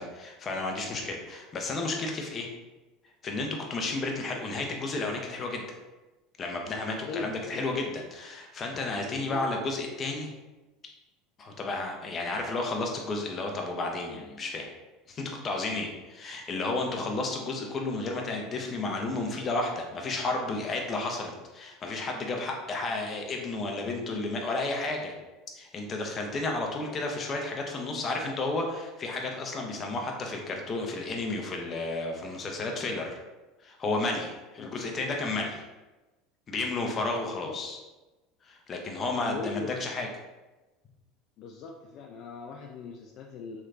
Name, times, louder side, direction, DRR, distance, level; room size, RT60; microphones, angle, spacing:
voice 1, 0.0-2.5 3.2-5.6 6.4-10.3 11.4-14.7 15.1-25.1 25.6-33.2 33.6-35.6 36.5-37.8 38.5-40.1, left 2 dB, 35° left, 2 dB, 0.7 m, -32 dB
voice 2, 6.8-7.6 9.1-9.5 34.6-34.7 37.2-37.6 39.1-39.9 41.4-43.6, left 4 dB, 55° left, 2 dB, 0.3 m, -40 dB
3.3 x 3.0 x 2.5 m, 1.1 s
supercardioid pair, 110°, 0 cm